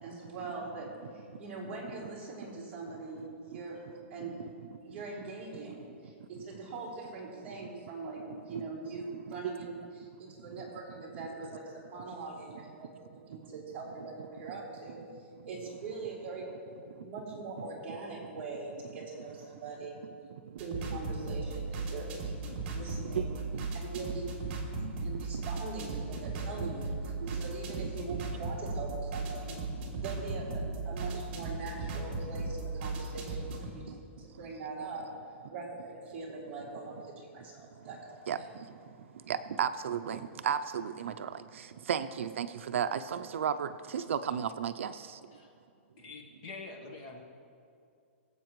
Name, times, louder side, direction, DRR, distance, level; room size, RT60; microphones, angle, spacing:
voice 1, 0.0-3.8 4.1-4.4 4.8-16.5 17.0-20.0 20.6-23.3 23.7-24.3 25.0-29.6 29.9-30.5 30.8-33.8 34.2-35.1 35.5-38.5, right 3 dB, 15° right, -8 dB, 2.9 m, -42 dB
voice 2, 8.3-8.7 9.4-9.5 23.0-23.5 24.3-24.4 24.8-24.9 25.3-25.4 26.6-26.8 27.2-27.3 38.3-38.4 39.3-45.2, right 8 dB, 75° right, 10 dB, 0.5 m, -34 dB
sound 1, 20.6-33.7, right 3 dB, 35° right, 2.4 m, -37 dB
voice 3, 46.0-47.2, left 3 dB, 30° left, 2 dB, 1.1 m, -45 dB
22.5 x 8.0 x 3.1 m, 2.5 s
hypercardioid pair, 175°, 7 cm